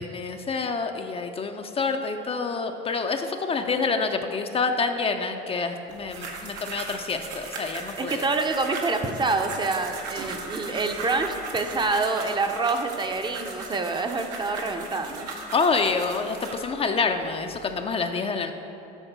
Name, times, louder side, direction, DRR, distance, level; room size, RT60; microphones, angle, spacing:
voice 1, 0.0-8.3 10.7-10.8 15.5-18.5, left 4 dB, 30° left, 5 dB, 0.4 m, -27 dB
sound 1, 5.9-16.7 17.3-17.8, right 3 dB, 80° right, 1.0 m, -38 dB
voice 2, 8.0-15.3, right 3 dB, 20° right, 5 dB, 0.6 m, -27 dB
8.0 x 3.6 x 6.0 m, 3.0 s
supercardioid pair, 85°, 21 cm